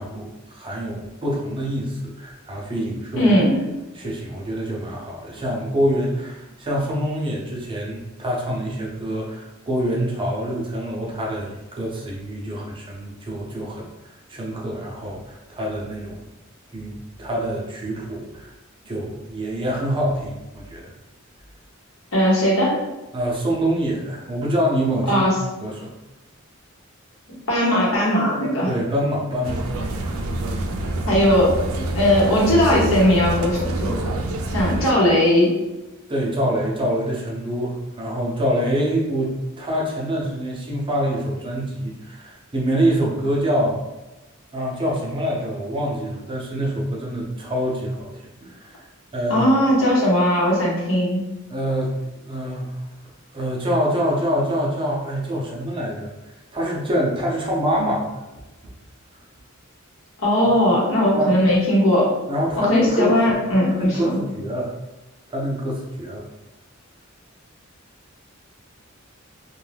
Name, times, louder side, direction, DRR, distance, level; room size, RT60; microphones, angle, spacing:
voice 1, 0.0-3.3 3.9-13.9 14.3-16.2 16.7-18.5 18.8-20.9 23.1-25.3 25.6-25.9 28.7-29.8 36.1-43.8 44.5-48.1 48.4-48.7 49.1-49.5 51.5-51.9 52.2-52.7 53.3-56.1 56.5-58.2 61.1-61.4 62.3-63.2 63.7-64.7 65.3-66.3, equal, 25° right, -3 dB, 0.6 m, -25 dB
voice 2, 3.2-3.6 22.1-22.7 25.1-25.3 27.5-28.7 31.1-34.0 34.5-35.5 49.3-51.2 60.2-62.1 62.6-64.2, left 1 dB, 75° left, -4 dB, 1.0 m, -18 dB
sound 1, 29.4-34.9, right 2 dB, 85° right, 0.4 m, -26 dB
2.5 x 2.3 x 3.2 m, 1.0 s
head